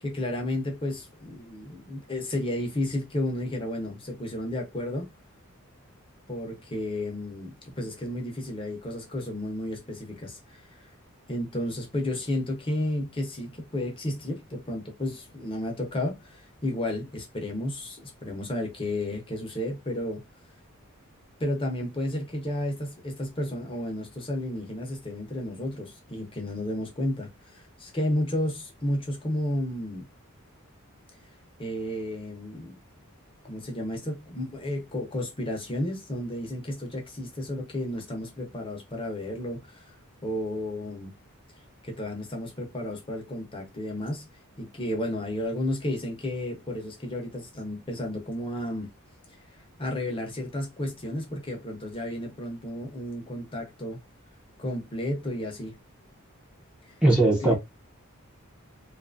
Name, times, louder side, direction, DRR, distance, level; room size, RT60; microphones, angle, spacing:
voice 1, 0.0-5.1 6.3-10.9 11.3-20.2 21.4-30.1 31.6-32.8 33.4-39.8 40.2-41.1 41.8-44.3 44.6-48.9 49.8-54.0 54.6-55.7 56.9-57.0 57.4-57.6, left 1 dB, 25° left, 0.8 m, -32 dB
voice 2, 57.0-57.6, right 2 dB, 5° right, 0.7 m, -19 dB
2.7 x 2.4 x 2.5 m
head